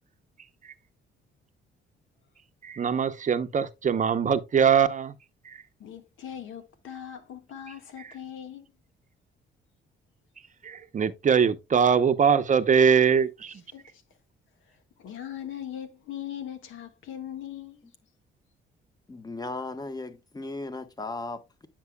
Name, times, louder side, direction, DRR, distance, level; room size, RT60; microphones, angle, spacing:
voice 1, 2.6-5.1 5.4-5.6 10.6-13.6, right 6 dB, 40° right, 0.7 m, -22 dB
voice 2, 5.8-8.7 13.7-14.0 14.7-17.8, left 10 dB, 80° left, 1.6 m, -40 dB
voice 3, 19.1-21.7, left 2 dB, 20° left, 1.2 m, -36 dB
9.4 x 6.0 x 2.2 m
cardioid pair, 90°, 20 cm